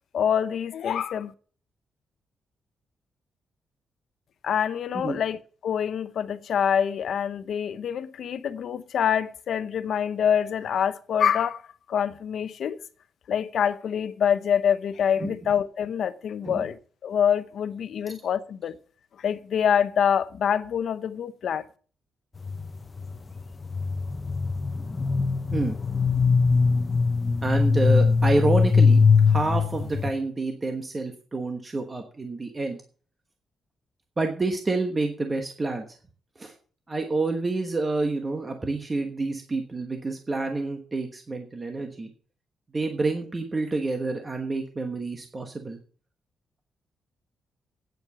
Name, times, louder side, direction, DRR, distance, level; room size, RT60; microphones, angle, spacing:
voice 1, 0.1-1.3 4.4-11.6 11.9-12.8 13.3-16.8 17.0-18.8 19.2-21.6, left 8 dB, 60° left, 0.8 m, -25 dB
voice 2, 15.2-15.5 16.4-16.7 18.1-18.2 25.5-25.8 27.4-32.8 34.2-35.8 36.4-36.5 36.9-42.1 42.7-45.8, right 3 dB, 20° right, 1.2 m, -28 dB
sound 1, 22.4-30.1, left 5 dB, 25° left, 0.8 m, -22 dB
9.3 x 7.9 x 6.8 m
wide cardioid pair, 160°, 0 cm